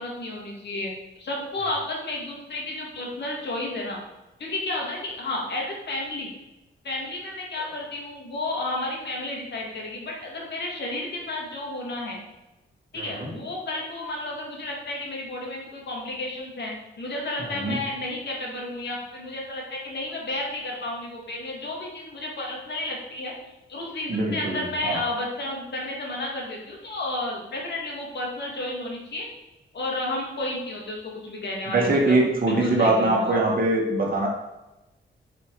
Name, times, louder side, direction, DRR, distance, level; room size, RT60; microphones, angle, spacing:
voice 1, 0.0-4.0 4.4-6.3 6.8-12.2 12.9-23.3 23.7-29.3 29.7-32.2 32.4-33.4, left 2 dB, 60° left, -1 dB, 2.4 m, -32 dB
voice 2, 13.0-13.3 17.6-17.8 24.1-25.0 31.7-34.3, right 2 dB, 45° right, -1 dB, 2.1 m, -22 dB
10.0 x 5.5 x 4.9 m, 1.0 s
wide cardioid pair, 160°, 20 cm